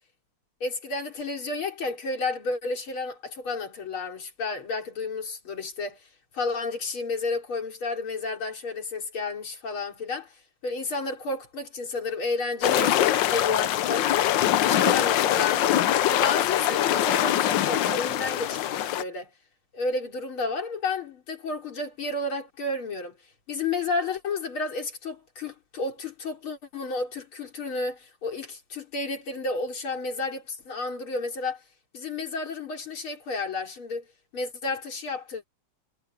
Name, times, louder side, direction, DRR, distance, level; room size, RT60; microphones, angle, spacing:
voice 1, 0.6-6.0 6.3-10.3 10.6-14.2 14.6-15.8 16.1-19.3 19.7-23.2 23.5-31.6 31.9-34.1 34.3-35.5, left 3 dB, 85° left, 4.4 m, -31 dB
sound 1, 12.6-19.0, left 12 dB, 70° left, 1.4 m, -23 dB
sound 2, 15.6-17.6, left 6 dB, 20° left, 0.7 m, -38 dB
omnidirectional pair, 2.2 m